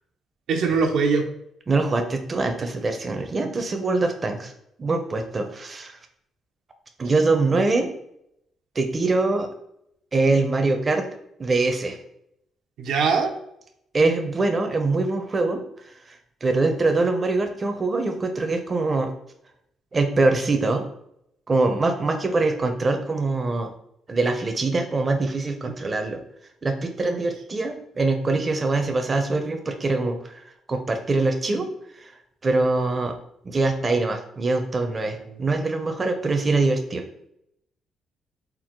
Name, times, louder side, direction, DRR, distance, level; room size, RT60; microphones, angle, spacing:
voice 1, 0.5-1.2 12.8-13.3 35.3-35.4, right 5 dB, 80° right, 3 dB, 0.6 m, -21 dB
voice 2, 1.7-4.5 4.8-6.0 7.0-7.9 8.8-9.5 10.1-11.1 11.4-12.0 13.9-15.6 16.1-19.1 19.9-20.8 21.5-23.7 24.1-26.2 26.6-30.4 30.7-31.7 32.0-32.1 32.4-33.1 33.4-37.0, right 3 dB, 30° right, 5 dB, 0.5 m, -23 dB
4.4 x 2.1 x 3.6 m, 0.74 s
cardioid pair, 90°, 0 cm